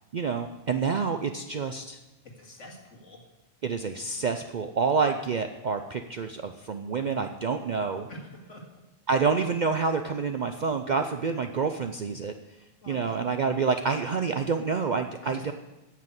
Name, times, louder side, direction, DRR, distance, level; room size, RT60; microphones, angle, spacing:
voice 1, 0.1-2.0 3.6-8.1 9.1-12.3 12.9-15.5, right 5 dB, 55° right, 7 dB, 0.5 m, -28 dB
voice 2, 2.4-3.2 8.1-8.6 12.8-13.2 15.2-15.5, equal, 70° left, 0 dB, 2.4 m, -46 dB
9.2 x 7.5 x 7.9 m, 1.0 s
omnidirectional pair, 1.3 m